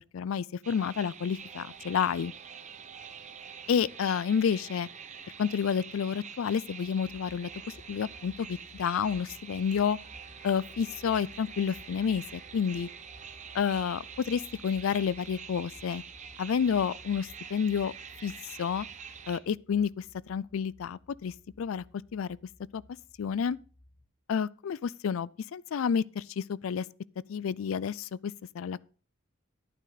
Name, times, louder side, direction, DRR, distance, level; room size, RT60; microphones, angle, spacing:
voice 1, 0.0-2.3 3.7-4.9 5.4-7.5 7.9-10.0 10.4-12.9 13.5-16.0 16.4-17.9 18.2-18.3 18.6-18.9 19.3-21.8 22.1-22.4 22.7-22.8 23.2-23.6 24.3-26.9 27.3-28.8, left 7 dB, 75° left, 0.4 m, -30 dB
sound 1, 0.6-19.4, right 7 dB, 35° right, 0.9 m, -46 dB
sound 2, 6.8-24.0, left 1 dB, 35° left, 4.4 m, -57 dB
11.0 x 9.3 x 4.0 m
head